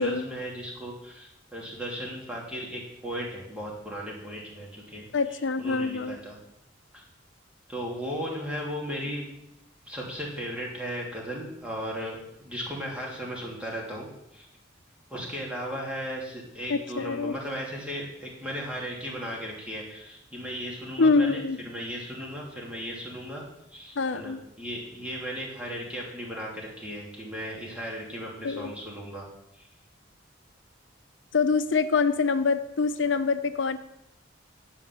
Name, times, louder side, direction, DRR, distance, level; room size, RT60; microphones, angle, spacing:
voice 1, 0.0-5.1 5.6-6.4 6.9-7.0 7.7-9.2 9.9-14.5 15.1-23.4 23.7-29.2 29.5-29.7, equal, 5° right, -3 dB, 2.6 m, -36 dB
voice 2, 5.1-6.2 16.7-17.3 21.0-21.6 24.0-24.4 28.4-28.7 31.3-33.8, left 4 dB, 75° left, 10 dB, 0.6 m, -25 dB
10.5 x 5.0 x 7.4 m, 0.81 s
head